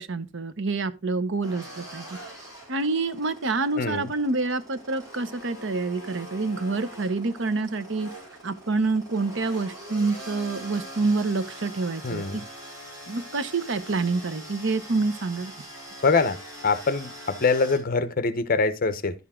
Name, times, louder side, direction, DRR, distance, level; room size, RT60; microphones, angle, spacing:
voice 1, 0.0-2.0 2.7-8.1 8.4-12.2 13.1-15.5, right 3 dB, 65° right, 0.8 m, -27 dB
sound 1, 1.4-17.8, equal, 20° right, 5.1 m, -43 dB
voice 2, 3.8-4.1 12.0-12.4 16.0-16.4 16.6-19.1, left 4 dB, 45° left, 0.8 m, -24 dB
11.5 x 6.9 x 3.6 m
head